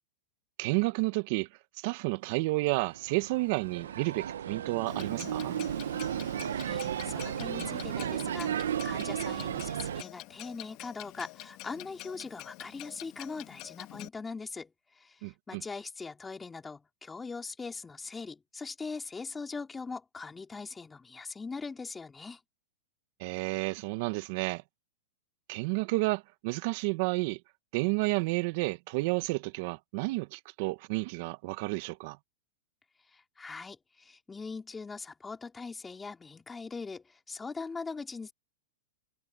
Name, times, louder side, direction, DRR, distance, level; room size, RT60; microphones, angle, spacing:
voice 1, 0.6-1.5 1.8-5.6 15.2-15.6 23.2-24.6 25.5-27.4 27.7-32.2, right 24 dB, 50° right, 1.3 m, -31 dB
sound 1, 2.3-10.0, right 9 dB, 85° right, 0.8 m, -34 dB
Clock, 4.9-14.1, left 20 dB, 45° left, 2.0 m, -46 dB
voice 2, 6.7-22.4 33.1-38.3, left 4 dB, 10° left, 4.1 m, -41 dB
hypercardioid pair, 135°, 0 cm